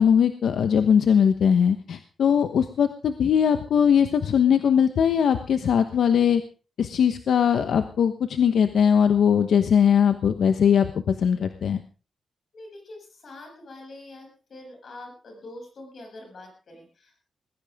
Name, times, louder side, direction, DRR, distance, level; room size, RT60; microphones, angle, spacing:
voice 1, 0.0-6.4 6.8-11.8, left 7 dB, 85° left, 8 dB, 1.1 m, -20 dB
voice 2, 12.5-17.2, left 2 dB, 50° left, 2 dB, 7.3 m, -44 dB
20.0 x 15.5 x 3.6 m, 0.35 s
wide cardioid pair, 175°, 0 cm